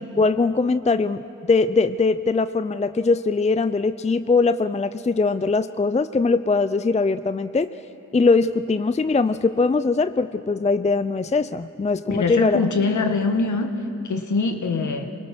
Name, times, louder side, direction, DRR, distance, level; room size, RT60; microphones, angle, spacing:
voice 1, 0.2-7.7 8.1-12.6, left 3 dB, 20° left, 12 dB, 0.5 m, -21 dB
voice 2, 12.1-15.1, left 4 dB, 55° left, 5 dB, 1.9 m, -23 dB
27.0 x 19.0 x 6.2 m, 2.8 s
supercardioid pair, 45°, 34 cm